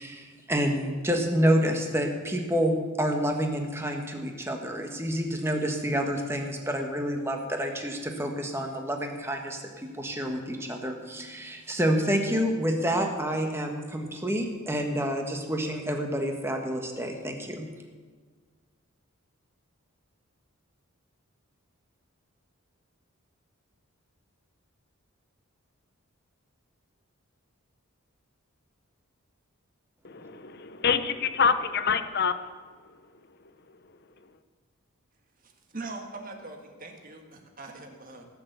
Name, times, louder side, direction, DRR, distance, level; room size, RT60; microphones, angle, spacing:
voice 1, 0.0-17.7, equal, 10° right, 3 dB, 1.4 m, -28 dB
voice 2, 30.0-32.3, left 6 dB, 45° left, 11 dB, 0.8 m, -26 dB
voice 3, 35.4-38.3, right 3 dB, 40° right, 3 dB, 1.8 m, -42 dB
17.0 x 6.8 x 8.2 m, 1.5 s
head